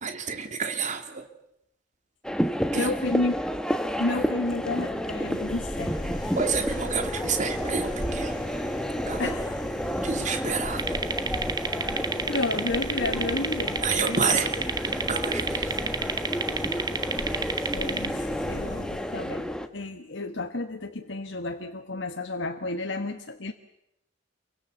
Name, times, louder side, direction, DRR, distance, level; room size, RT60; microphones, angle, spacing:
voice 1, 0.0-1.3 2.7-2.9 6.3-8.4 9.1-9.3 10.0-11.0 13.8-14.5 14.9-15.7, right 5 dB, 40° right, 6 dB, 2.7 m, -29 dB
sound 1, 2.2-19.7, equal, 5° left, 1.5 m, -31 dB
voice 2, 2.7-3.5 4.0-6.2 9.2-9.5 11.7-14.4 17.7-23.5, left 2 dB, 70° left, 5 dB, 1.4 m, -31 dB
sound 2, 4.9-19.6, left 1 dB, 25° left, 3.8 m, -37 dB
sound 3, 10.8-18.1, right 4 dB, 20° right, 1.4 m, -31 dB
28.5 x 24.0 x 7.2 m, 0.80 s
head